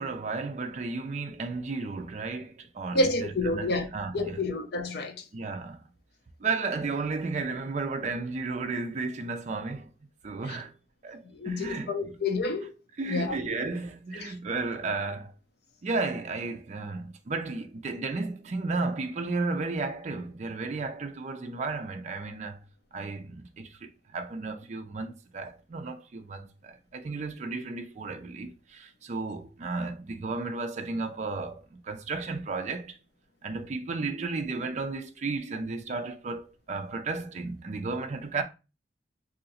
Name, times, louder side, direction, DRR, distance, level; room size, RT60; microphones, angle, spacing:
voice 1, 0.0-4.4 5.3-5.8 6.4-9.9 10.2-10.7 11.0-12.1 13.0-15.3 15.8-22.6 22.9-33.0 33.4-38.4, right 3 dB, 40° right, 0.4 m, -33 dB
voice 2, 2.9-3.9 4.1-5.2 10.4-10.6 11.3-12.7 13.1-13.4 14.2-14.4, left 2 dB, 60° left, 0.6 m, -29 dB
2.7 x 2.6 x 4.0 m
head